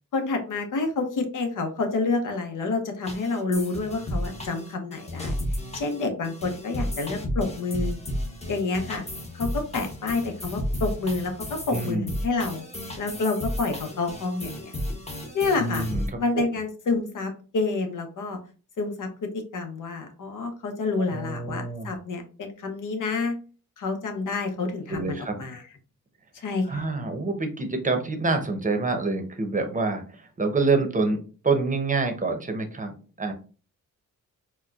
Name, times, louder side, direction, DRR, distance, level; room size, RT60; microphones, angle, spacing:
voice 1, 0.1-5.4 5.7-8.0 8.5-9.0 9.3-11.3 11.7-12.6 13.0-14.8 15.3-15.9 16.2-18.4 18.8-23.3 23.8-25.6 26.4-26.8, left 3 dB, 70° left, 5 dB, 0.8 m, -28 dB
sound 1, 3.0-16.1, equal, 20° left, 0.9 m, -33 dB
voice 2, 11.7-12.1 15.6-16.0 16.3-16.5 21.0-22.0 24.9-25.5 26.7-31.2 31.4-32.9 33.2-33.3, right 3 dB, 25° right, 5 dB, 0.7 m, -26 dB
4.2 x 2.2 x 2.3 m, 0.37 s
cardioid pair, 85°, 33 cm